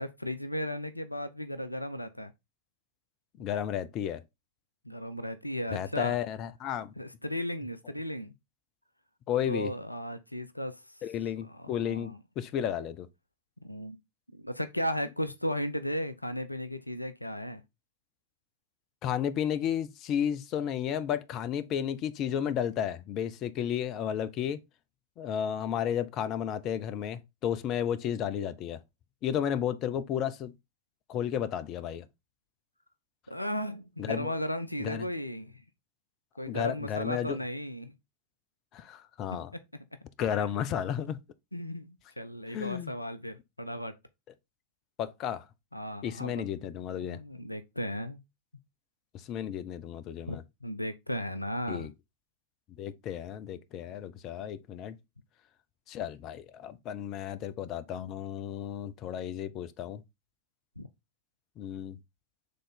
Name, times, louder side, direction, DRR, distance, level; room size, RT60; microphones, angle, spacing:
voice 1, 0.0-2.3 4.8-6.2 7.0-8.3 9.5-10.8 11.4-12.2 13.6-14.0 14.3-17.6 33.3-35.6 36.4-37.9 39.5-39.6 41.5-43.9 45.7-46.4 47.0-48.2 50.3-51.9 60.8-60.9, equal, 85° left, 0.5 m, -35 dB
voice 2, 3.4-4.2 5.7-6.9 9.3-9.7 11.0-13.1 19.0-24.6 25.2-28.8 29.2-30.5 31.1-32.1 34.0-34.3 34.8-35.1 36.5-37.4 38.7-39.5 40.2-41.2 42.5-42.9 45.0-45.4 46.0-47.2 49.1-50.4 51.7-51.9 52.8-55.0 55.9-60.0 61.6-62.0, left 9 dB, 35° left, 0.6 m, -33 dB
6.6 x 3.8 x 4.0 m
figure-of-eight pair, 90°, 0 cm